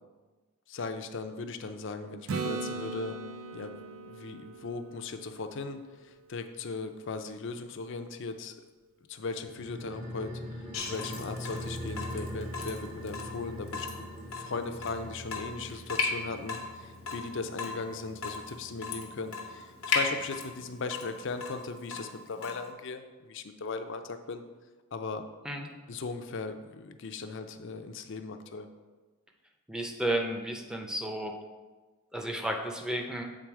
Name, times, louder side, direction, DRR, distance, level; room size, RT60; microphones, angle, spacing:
voice 1, 0.7-3.2 3.5-3.7 4.1-8.6 9.1-10.4 10.8-14.1 14.4-24.4 24.9-25.2 25.9-28.7, left 4 dB, 60° left, 8 dB, 0.5 m, -38 dB
Acoustic guitar / Strum, 2.3-6.0 10.9-11.0, right 3 dB, 80° right, 0.5 m, -38 dB
sound 1, 9.4-20.3 20.6-20.7, equal, 40° right, 1.0 m, -43 dB
Water tap faucet / Drip, 10.7-22.7, left 4 dB, 90° left, 0.8 m, -37 dB
voice 2, 29.7-31.3 32.1-33.2, right 1 dB, 5° right, 3 dB, 0.6 m, -32 dB
7.7 x 3.8 x 4.7 m, 1.3 s
head